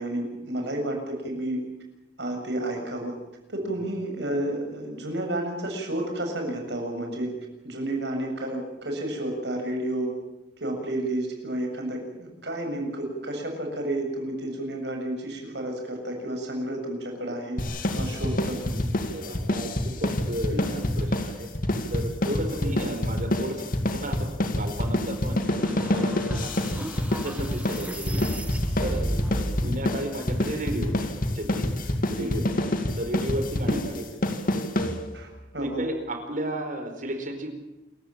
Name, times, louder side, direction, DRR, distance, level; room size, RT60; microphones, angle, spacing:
voice 1, 0.0-1.6 2.2-3.1 3.5-7.3 7.6-10.1 10.6-17.6 17.9-18.8 20.5-20.6 22.6-22.7 27.3-27.4 32.2-32.3 33.7-33.8 35.1-35.9, right 1 dB, 70° right, 3 dB, 7.2 m, -31 dB
sound 1, 17.6-35.4, left 1 dB, 50° left, 2.5 m, -27 dB
voice 2, 19.0-21.5 21.9-26.1 26.4-26.9 27.2-28.4 28.8-29.1 29.3-31.7 32.1-32.5 33.0-34.1 35.6-37.5, right 1 dB, 45° right, 6 dB, 4.7 m, -34 dB
sound 2, 25.6-29.7, right 1 dB, 10° right, 1.5 m, -33 dB
28.0 x 15.0 x 9.0 m, 0.95 s
head